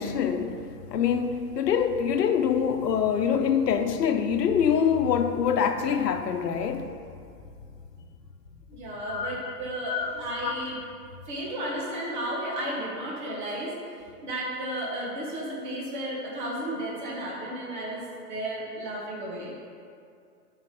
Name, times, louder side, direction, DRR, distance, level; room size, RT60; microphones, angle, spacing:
voice 1, 0.0-7.0 9.1-9.5 9.9-10.1 10.4-10.8, left 7 dB, 80° left, 0.9 m, -25 dB
voice 2, 8.7-10.8 11.3-13.8 14.2-19.5, right 1 dB, 30° right, 1.3 m, -33 dB
8.9 x 4.8 x 5.2 m
hypercardioid pair, 175°, 48 cm